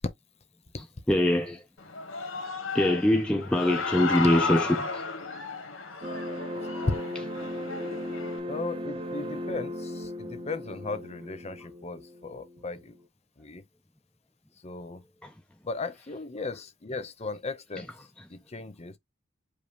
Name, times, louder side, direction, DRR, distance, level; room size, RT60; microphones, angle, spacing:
voice 1, 1.1-1.6 2.7-5.0 15.2-15.3, left 1 dB, 5° left, 0.4 m, -23 dB
Human voice / Cheering, 1.8-8.4, left 4 dB, 80° left, 1.2 m, -34 dB
sound 1, 6.0-13.0, left 1 dB, 25° right, 0.7 m, -37 dB
voice 2, 8.5-13.0 13.4-13.6 14.6-15.0 15.6-17.9 18.3-19.0, left 3 dB, 30° left, 0.8 m, -37 dB
5.2 x 2.1 x 4.9 m
head